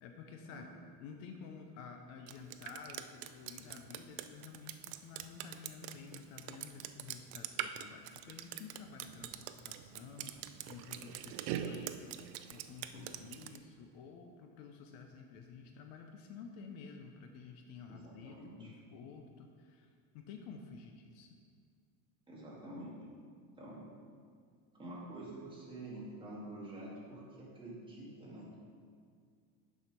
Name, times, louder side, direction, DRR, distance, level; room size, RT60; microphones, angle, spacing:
voice 1, 0.0-0.7 1.0-21.3, left 5 dB, 55° left, 4 dB, 0.7 m, -51 dB
Drip, 2.3-13.6, right 11 dB, 65° right, 0.5 m, -43 dB
voice 2, 17.9-18.7 22.3-23.0 23.6-23.8 24.7-28.5, right 1 dB, 10° right, -6 dB, 1.6 m, -48 dB
6.9 x 4.9 x 5.9 m, 2.1 s
cardioid pair, 160°, 44 cm